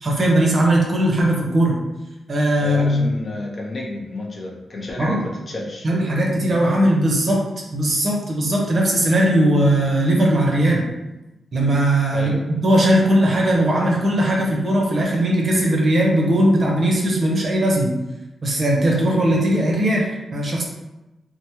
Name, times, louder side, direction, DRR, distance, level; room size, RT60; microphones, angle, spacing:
voice 1, 0.0-1.8 2.3-3.1 5.0-5.2 5.8-7.4 7.7-10.9 11.5-17.9 18.4-20.6, right 1 dB, 40° right, -2 dB, 0.6 m, -18 dB
voice 2, 2.6-5.9 12.1-12.4, left 1 dB, 30° left, -1 dB, 0.4 m, -30 dB
3.2 x 2.0 x 2.8 m, 1.0 s
wide cardioid pair, 170°, 0 cm